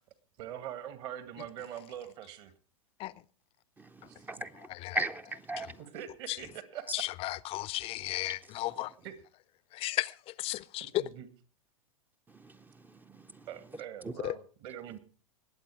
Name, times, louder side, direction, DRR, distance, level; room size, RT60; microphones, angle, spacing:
voice 1, 0.4-2.5 4.1-4.2 5.9-6.8 9.0-9.1 11.0-11.3 13.5-15.0, right 10 dB, 50° right, 2.1 m, -43 dB
voice 2, 3.8-4.7 4.9-5.8 12.3-13.5 14.0-14.1, right 2 dB, 10° right, 0.6 m, -38 dB
voice 3, 6.9-8.9 9.7-11.0 14.2-14.3, left 17 dB, 30° left, 0.6 m, -34 dB
20.5 x 8.2 x 4.8 m
figure-of-eight pair, 100°, 18 cm